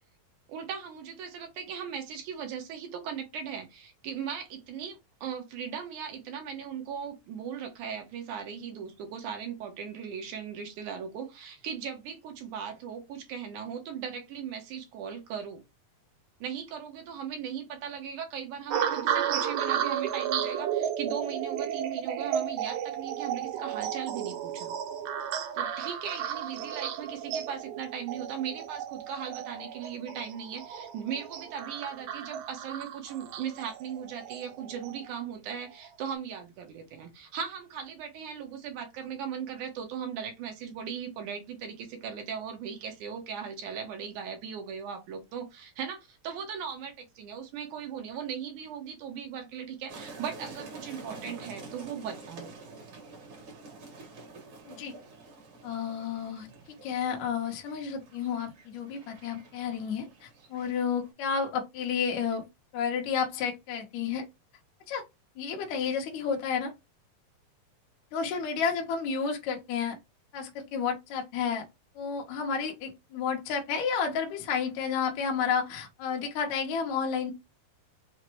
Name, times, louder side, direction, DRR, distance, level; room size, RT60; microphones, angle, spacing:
voice 1, 0.5-15.6 16.4-24.7 25.5-52.5, right 7 dB, 70° right, 2.1 m, -38 dB
sound 1, 18.7-35.2 35.8-36.1, right 9 dB, 90° right, 1.7 m, -33 dB
sound 2, 49.9-61.1, right 3 dB, 50° right, 1.7 m, -48 dB
voice 2, 55.6-56.5 56.8-62.5 62.7-64.3 64.9-65.0 65.4-66.7 68.1-70.0 70.3-71.7 72.0-77.3, left 6 dB, 75° left, 1.8 m, -31 dB
6.0 x 2.1 x 2.9 m
omnidirectional pair, 4.0 m